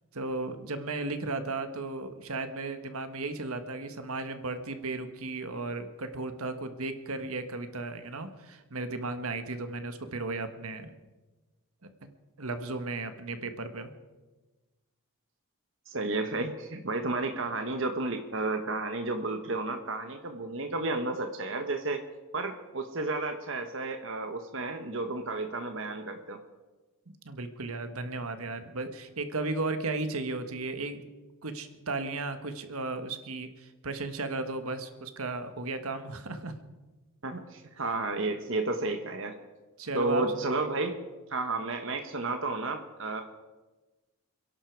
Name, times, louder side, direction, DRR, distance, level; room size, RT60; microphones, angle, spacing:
voice 1, 0.1-10.9 11.8-12.1 12.4-13.9 27.2-31.0 31.4-36.5 39.8-40.6, right 3 dB, 75° right, 9 dB, 1.4 m, -35 dB
voice 2, 15.9-22.0 22.3-26.4 37.2-39.3 39.9-41.0 41.3-43.2, right 2 dB, 60° right, 5 dB, 1.2 m, -32 dB
28.0 x 11.0 x 4.6 m, 1.2 s
head